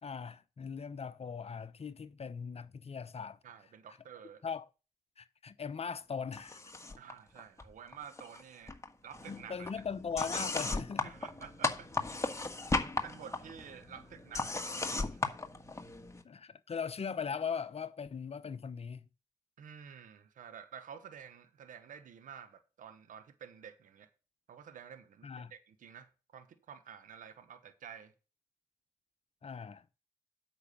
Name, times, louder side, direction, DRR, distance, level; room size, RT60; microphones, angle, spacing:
voice 1, 0.0-3.4 4.4-4.7 5.2-6.6 9.3-11.1 16.2-19.1 25.2-25.5 29.4-29.8, left 6 dB, 45° left, 0.9 m, -39 dB
voice 2, 3.4-4.4 7.0-9.8 11.0-11.9 12.7-15.2 19.6-24.1 24.5-28.1, right 8 dB, 70° right, 1.2 m, -51 dB
sound 1, 6.3-7.1 7.4-8.4 8.7-16.2, left 3 dB, 20° left, 1.6 m, -37 dB
8.5 x 6.2 x 5.4 m
supercardioid pair, 45°, 14 cm